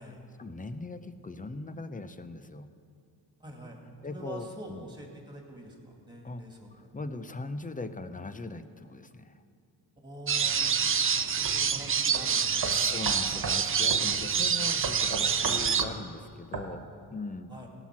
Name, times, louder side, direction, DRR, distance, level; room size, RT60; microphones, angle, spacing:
voice 1, 0.4-2.7 4.0-4.9 6.2-6.4 6.7-9.3 12.7-16.8 17.1-17.5, left 3 dB, 20° left, 11 dB, 0.6 m, -40 dB
voice 2, 3.4-3.8 4.1-6.9 10.0-12.8 17.5-17.7, equal, 10° right, 1 dB, 2.4 m, -45 dB
sound 1, 10.3-15.8, right 6 dB, 30° right, 0.5 m, -27 dB
sound 2, 11.4-11.6 12.1-12.2 12.6-13.6 13.9-14.1 14.8-16.0 16.5-16.7, right 4 dB, 50° right, 1.4 m, -35 dB
17.0 x 6.0 x 6.0 m, 2.4 s
cardioid pair, 80°, 46 cm